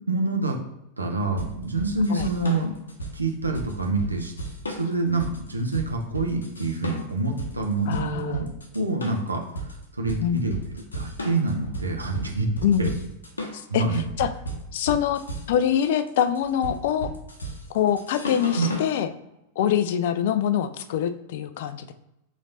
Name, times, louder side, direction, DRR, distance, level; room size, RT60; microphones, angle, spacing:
voice 1, 0.1-0.6 1.0-2.8 3.1-4.3 4.7-8.5 8.7-12.5 12.8-12.9 13.7-14.0 18.6-18.7, right 3 dB, 80° right, 1 dB, 0.8 m, -27 dB
sound 1, 1.4-18.9, right 1 dB, 75° left, 0.9 m, -35 dB
voice 2, 7.9-8.4 10.2-10.5 12.6-13.0 13.5-14.3 14.7-15.2 15.5-17.1 17.7-19.1 19.6-21.9, left 9 dB, 55° left, 11 dB, 0.4 m, -24 dB
3.9 x 3.2 x 4.0 m, 0.86 s
figure-of-eight pair, 90°, 0 cm